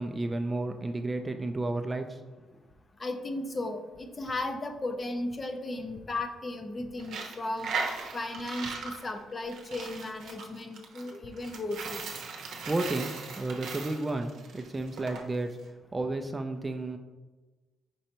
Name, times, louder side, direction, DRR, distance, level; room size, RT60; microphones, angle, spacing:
voice 1, 0.0-2.2 12.7-15.6 15.9-17.0, right 2 dB, 20° right, 6 dB, 0.4 m, -32 dB
voice 2, 3.0-7.7 8.1-12.0, left 2 dB, 30° left, 6 dB, 0.5 m, -35 dB
Coin (dropping), 7.0-15.2, right 4 dB, 75° right, 0.7 m, -38 dB
5.3 x 3.1 x 2.9 m, 1.2 s
cardioid pair, 90°, 0 cm